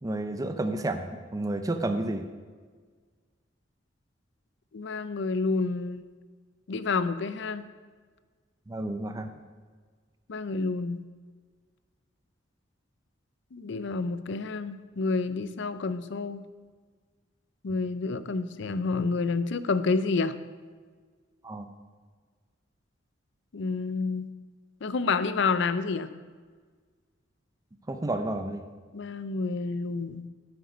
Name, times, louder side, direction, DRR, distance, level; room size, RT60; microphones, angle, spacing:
voice 1, 0.0-2.3 8.7-9.3 21.4-21.6 27.9-28.6, right 2 dB, 20° right, 7 dB, 0.5 m, -31 dB
voice 2, 4.7-6.0 6.7-7.6 10.3-11.0 13.5-16.4 17.6-20.3 23.5-24.3 24.8-26.1 28.9-30.3, left 4 dB, 65° left, 13 dB, 0.5 m, -29 dB
9.4 x 8.0 x 5.2 m, 1.5 s
head